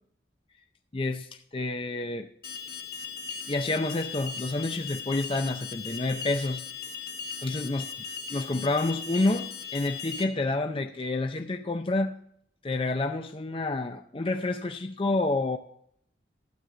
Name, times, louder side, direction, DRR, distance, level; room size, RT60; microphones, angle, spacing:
voice 1, 0.9-2.3 3.5-6.6 7.4-7.8 8.3-12.1 12.6-15.6, left 2 dB, 30° left, 0.5 m, -29 dB
Alarm, 2.4-10.2, left 6 dB, 50° left, 1.3 m, -38 dB
12.0 x 8.4 x 3.8 m
head